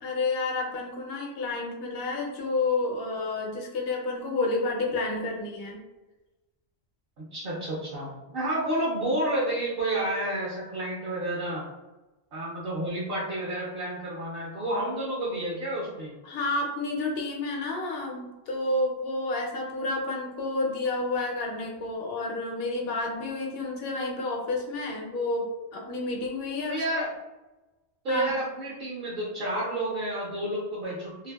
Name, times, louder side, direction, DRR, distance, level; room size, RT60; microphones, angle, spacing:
voice 1, 0.0-5.8 16.2-26.8 28.1-28.2, left 2 dB, 65° left, 0 dB, 0.8 m, -30 dB
voice 2, 7.3-11.6 12.3-16.1 26.7-27.1 28.0-31.3, right 1 dB, 60° right, -6 dB, 0.9 m, -30 dB
2.6 x 2.5 x 2.2 m, 1.1 s
omnidirectional pair, 1.1 m